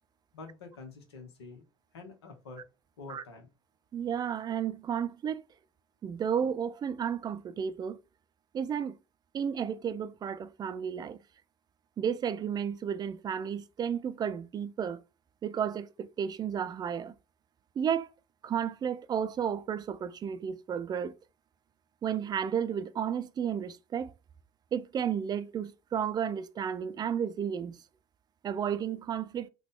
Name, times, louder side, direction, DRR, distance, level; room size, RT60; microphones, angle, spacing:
voice 1, 0.3-1.6 1.9-2.6 3.0-3.5, left 4 dB, 80° left, 1.0 m, -47 dB
voice 2, 3.9-5.4 6.0-8.0 8.5-9.0 9.3-11.2 12.0-15.0 15.4-17.1 17.8-18.1 18.4-21.1 22.0-24.1 24.7-27.8 28.4-29.5, right 8 dB, 30° right, 0.4 m, -32 dB
3.7 x 2.3 x 3.6 m
figure-of-eight pair, 65°, 13 cm